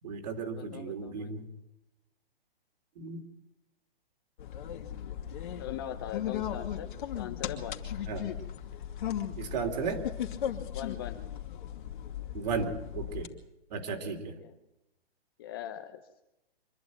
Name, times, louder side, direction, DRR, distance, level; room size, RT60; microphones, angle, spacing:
voice 1, 0.0-1.5 3.0-3.2 8.1-8.3 9.4-10.1 12.3-13.3 13.7-14.4, right 5 dB, 40° right, 5 dB, 2.9 m, -35 dB
voice 2, 0.5-1.4 5.6-7.8 10.7-11.3 14.4-14.5 15.4-16.0, left 11 dB, 25° left, 8 dB, 0.7 m, -41 dB
sound 1, 4.4-13.3, left 10 dB, 50° left, 2.6 m, -37 dB
25.5 x 11.5 x 9.4 m, 0.93 s
hypercardioid pair, 165°, 31 cm